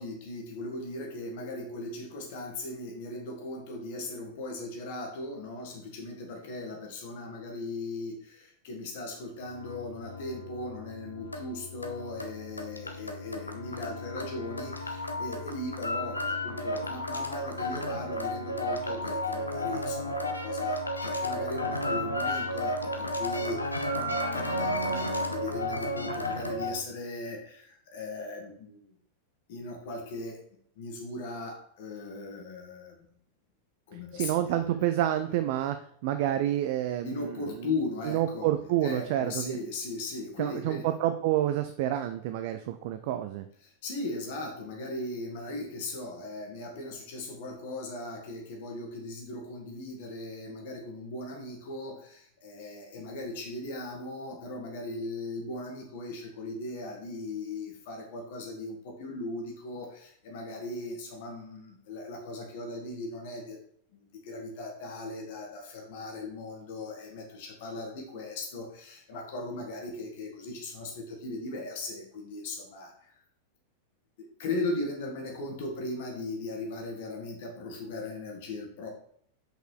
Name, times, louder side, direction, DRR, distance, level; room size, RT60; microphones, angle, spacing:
voice 1, 0.0-28.9 29.5-30.4 30.8-32.9 33.9-34.6 37.0-38.5 38.8-40.9 43.6-63.6 63.9-73.1 74.4-78.9, left 2 dB, 50° left, 2 dB, 2.1 m, -38 dB
sound 1, 9.4-26.8, left 1 dB, 85° left, 0.8 m, -33 dB
voice 2, 34.1-35.8 36.0-37.7 38.1-39.6 40.4-43.5, right 12 dB, 50° right, 9 dB, 0.5 m, -28 dB
6.0 x 5.4 x 4.8 m, 0.64 s
figure-of-eight pair, 90°, 0 cm